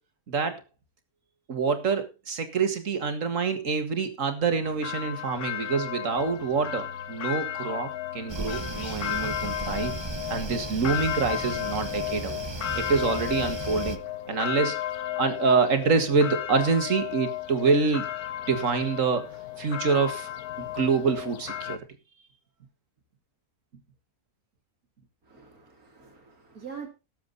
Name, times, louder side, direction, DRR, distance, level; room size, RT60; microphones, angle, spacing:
voice 1, 0.3-0.6 1.5-9.9 10.3-12.4 12.8-14.0 14.3-14.8 15.2-18.1 18.5-19.3 19.6-20.3 20.6-21.8, right 4 dB, 60° right, 8 dB, 2.1 m, -26 dB
sound 1, 4.6-21.8, left 11 dB, 90° left, 1.6 m, -34 dB
sound 2, 8.3-14.0, right 3 dB, 25° right, 0.7 m, -36 dB
voice 2, 25.2-26.9, right 6 dB, 75° right, 4 dB, 3.2 m, -44 dB
18.5 x 7.4 x 4.0 m, 0.28 s
omnidirectional pair, 1.6 m